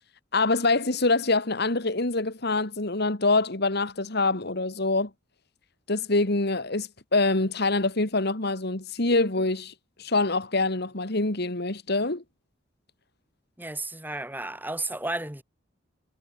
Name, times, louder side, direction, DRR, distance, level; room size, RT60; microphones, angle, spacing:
voice 1, 0.3-5.1 5.9-9.7 10.0-12.2, left 3 dB, 55° left, 2.2 m, -25 dB
voice 2, 13.6-15.4, right 2 dB, 10° right, 5.2 m, -33 dB
head